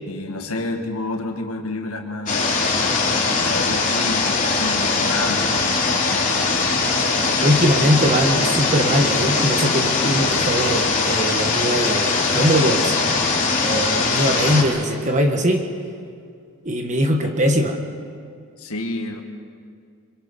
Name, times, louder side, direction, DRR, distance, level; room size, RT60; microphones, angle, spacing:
voice 1, 0.1-2.6 3.5-5.6 5.9-6.3 13.7-14.1 18.6-19.2, left 2 dB, 75° left, 3 dB, 1.8 m, -29 dB
sound 1, 2.3-14.6, left 4 dB, 35° left, 3.2 m, -21 dB
voice 2, 7.4-13.0 13.6-15.7 16.6-17.8, equal, 35° right, 4 dB, 1.4 m, -21 dB
25.5 x 23.5 x 5.4 m, 2.3 s
head